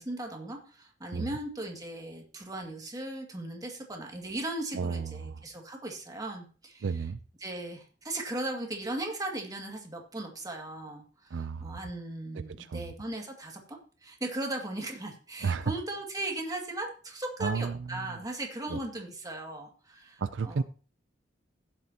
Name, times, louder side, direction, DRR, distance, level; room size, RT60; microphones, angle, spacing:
voice 1, 0.0-6.9 7.4-20.6, right 1 dB, 20° right, 2.1 m, -37 dB
voice 2, 4.7-5.4 6.8-7.2 11.3-11.8 12.3-12.9 15.4-15.7 17.4-18.2 18.7-18.8 20.2-20.6, right 5 dB, 75° right, 0.5 m, -33 dB
16.5 x 7.6 x 2.9 m
head